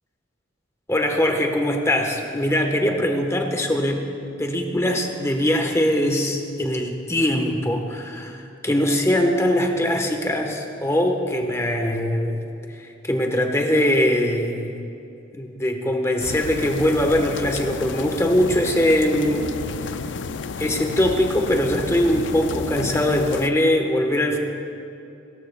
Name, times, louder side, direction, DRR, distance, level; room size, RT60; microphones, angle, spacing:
voice 1, 0.9-4.1 4.4-12.4 12.8-14.7 15.4-19.6 19.9-20.0 20.6-24.4, left 1 dB, 15° left, 3 dB, 1.1 m, -22 dB
sound 1, 16.2-23.5, left 5 dB, 75° left, 0.4 m, -31 dB
28.5 x 14.0 x 2.3 m, 2.7 s
head